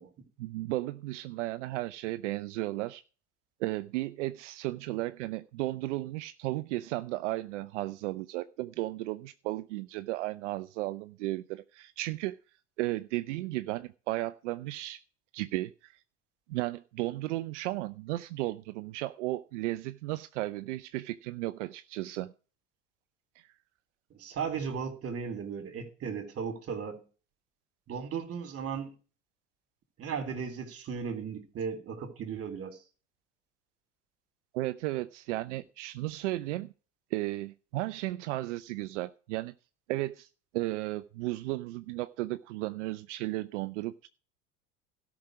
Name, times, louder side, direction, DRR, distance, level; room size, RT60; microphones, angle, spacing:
voice 1, 0.4-3.0 3.6-12.4 12.8-15.0 15.3-16.0 16.5-22.3 23.4-23.5 34.5-36.7 37.1-39.5 39.9-40.3 40.5-44.1, right 17 dB, 80° right, 0.7 m, -34 dB
voice 2, 24.2-27.0 27.9-28.9 30.0-32.8, right 6 dB, 40° right, 3.3 m, -36 dB
13.0 x 6.0 x 6.2 m
hypercardioid pair, 85°, 36 cm